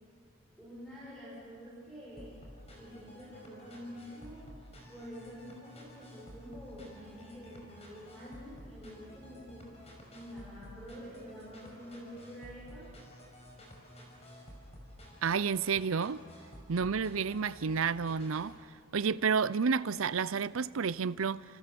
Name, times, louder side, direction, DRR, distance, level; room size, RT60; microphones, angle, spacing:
voice 1, 0.6-2.3 2.8-4.5 4.9-9.8 10.1-13.0, equal, 5° left, 6.3 m, -47 dB
sound 1, 2.2-18.6, equal, 30° left, 5.3 m, -52 dB
voice 2, 15.2-16.2 16.7-18.6 18.9-21.4, right 5 dB, 70° right, 0.6 m, -30 dB
29.5 x 27.5 x 7.0 m
head